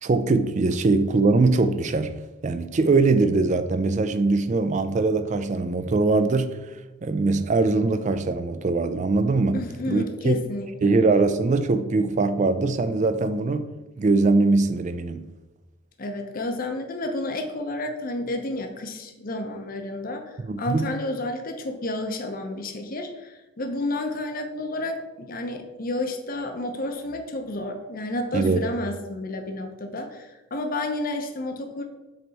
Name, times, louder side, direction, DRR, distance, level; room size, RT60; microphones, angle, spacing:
voice 1, 0.0-2.1 2.4-6.8 7.0-9.6 9.9-10.4 10.8-13.7 14.0-15.3 20.4-20.9 28.3-28.6, right 3 dB, 35° right, 0.4 m, -22 dB
voice 2, 9.5-11.0 16.0-31.8, left 2 dB, 40° left, 0.7 m, -31 dB
7.7 x 3.4 x 4.0 m
head